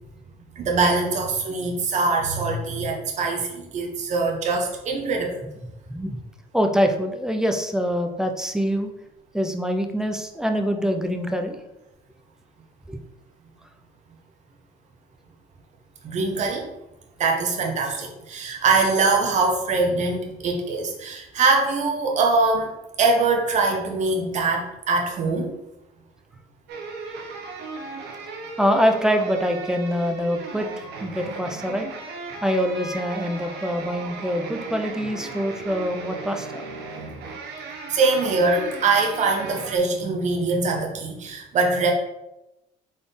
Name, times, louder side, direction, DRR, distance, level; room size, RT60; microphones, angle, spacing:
voice 1, 0.6-5.4 16.0-16.7 17.2-22.7 23.0-25.5 37.9-41.9, right 3 dB, 45° right, 1 dB, 0.8 m, -23 dB
voice 2, 6.5-8.9 9.3-11.6 12.9-13.0 28.6-31.9 32.4-36.6, equal, 5° right, 5 dB, 0.5 m, -24 dB
sound 1, 26.7-39.8, right 4 dB, 80° right, 0.8 m, -36 dB
4.0 x 3.6 x 3.6 m, 0.92 s
cardioid pair, 110°, 17 cm